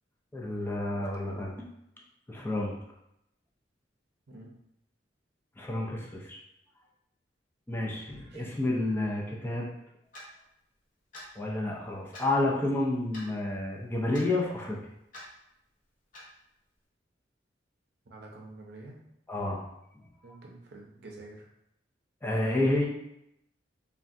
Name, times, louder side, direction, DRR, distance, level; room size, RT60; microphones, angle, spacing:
voice 1, 0.3-1.5 2.3-2.7 5.6-6.4 7.7-9.7 11.4-14.8 19.3-19.7 22.2-22.9, left 2 dB, 10° left, -2 dB, 0.4 m, -30 dB
voice 2, 0.9-1.4 4.3-4.5 8.1-8.5 18.1-19.1 20.2-21.5, right 2 dB, 65° right, -1 dB, 0.6 m, -48 dB
Clock, 10.1-10.3 11.1-11.3 12.1-12.3 13.1-13.3 14.1-14.3 15.1-15.3 16.1-16.3, left 1 dB, 50° left, 0.7 m, -45 dB
3.3 x 2.2 x 2.6 m, 0.80 s
head